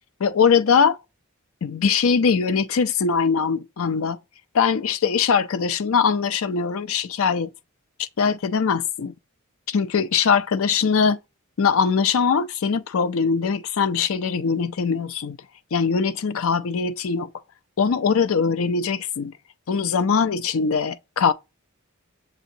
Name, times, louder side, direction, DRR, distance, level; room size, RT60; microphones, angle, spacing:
voice 1, 0.2-1.0 1.6-4.2 4.5-7.5 8.0-9.1 9.7-11.2 11.6-15.4 15.7-17.3 17.8-19.3 19.7-21.3, left 6 dB, 70° left, 0.5 m, -21 dB
6.8 x 2.7 x 2.7 m
head